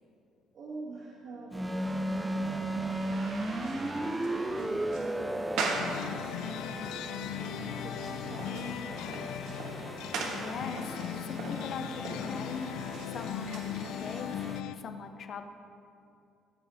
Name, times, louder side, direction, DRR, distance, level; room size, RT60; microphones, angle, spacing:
voice 1, 0.5-3.3 3.7-9.7, right 3 dB, 55° right, -6 dB, 1.6 m, -46 dB
sound 1, 1.5-14.6, right 1 dB, 5° right, 0.3 m, -37 dB
sound 2, 1.9-14.3, right 3 dB, 75° right, 1.3 m, -41 dB
sound 3, 5.7-14.8, left 11 dB, 85° left, 0.3 m, -38 dB
voice 2, 9.9-12.8 13.1-14.5 14.7-15.4, left 5 dB, 40° left, 7 dB, 0.6 m, -41 dB
15.5 x 7.7 x 3.5 m, 2.6 s
cardioid pair, 165°, 0 cm